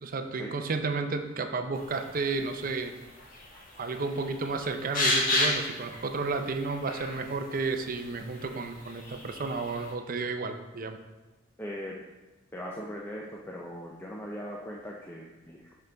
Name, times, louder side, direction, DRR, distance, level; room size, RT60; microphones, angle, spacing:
voice 1, 0.0-3.0 3.8-11.0, right 3 dB, 45° right, 7 dB, 0.6 m, -32 dB
sound 1, 1.7-9.9, left 2 dB, 45° left, 1.5 m, -34 dB
voice 2, 11.6-12.0 12.5-15.7, equal, 10° left, -2 dB, 0.5 m, -39 dB
5.9 x 5.4 x 3.8 m, 1.2 s
head